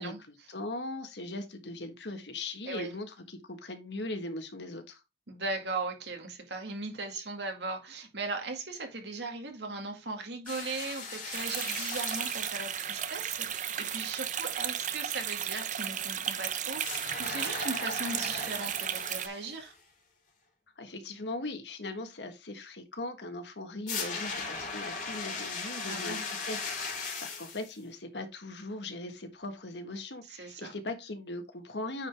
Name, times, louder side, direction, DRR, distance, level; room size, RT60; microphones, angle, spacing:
voice 1, 0.0-5.0 20.8-32.1, left 2 dB, 75° left, 1.5 m, -39 dB
voice 2, 5.3-19.7 25.9-26.3 30.3-30.7, right 3 dB, 75° right, 2.2 m, -38 dB
sound 1, 10.5-12.9 16.8-19.7 23.9-27.7, left 4 dB, 45° left, 2.8 m, -38 dB
sound 2, 11.3-19.3, right 9 dB, 45° right, 0.7 m, -34 dB
9.1 x 4.8 x 3.5 m
head